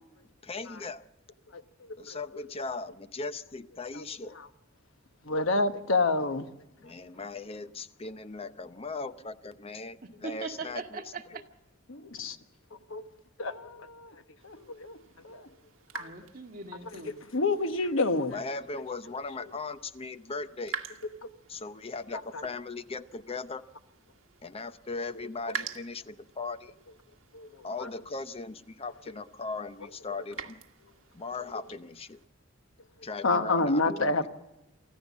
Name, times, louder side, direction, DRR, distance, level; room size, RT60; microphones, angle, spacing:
voice 1, 0.4-1.0 2.0-4.4 6.8-10.0 10.2-11.0 18.3-20.8 21.5-23.6 24.4-26.7 27.6-30.6 31.1-32.2 33.0-34.3, left 3 dB, 30° left, 0.6 m, -38 dB
voice 2, 5.3-6.5 11.9-12.4 12.9-13.1 13.4-15.0 15.2-15.5 15.9-16.1 17.3-18.4 21.2-21.3 22.1-22.4 25.1-25.3 27.3-27.5 27.8-27.9 33.2-34.3, left 3 dB, 75° left, 1.2 m, -29 dB
voice 3, 10.2-11.4 16.0-17.1 33.2-33.7, right 4 dB, 45° right, 1.9 m, -41 dB
sound 1, 14.4-32.3, right 5 dB, 80° right, 1.4 m, -47 dB
25.0 x 14.5 x 7.3 m
head